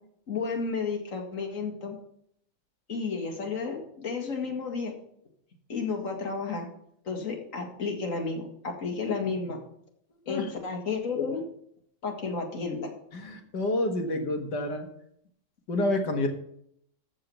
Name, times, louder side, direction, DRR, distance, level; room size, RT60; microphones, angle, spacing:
voice 1, 0.3-2.0 2.9-4.9 5.7-6.7 7.0-9.6 10.3-11.4 12.0-12.9, left 4 dB, 45° left, 2 dB, 2.4 m, -32 dB
voice 2, 13.1-14.9 15.7-16.3, left 1 dB, 70° left, 5 dB, 2.3 m, -28 dB
14.5 x 4.9 x 7.1 m, 0.69 s
omnidirectional pair, 2.0 m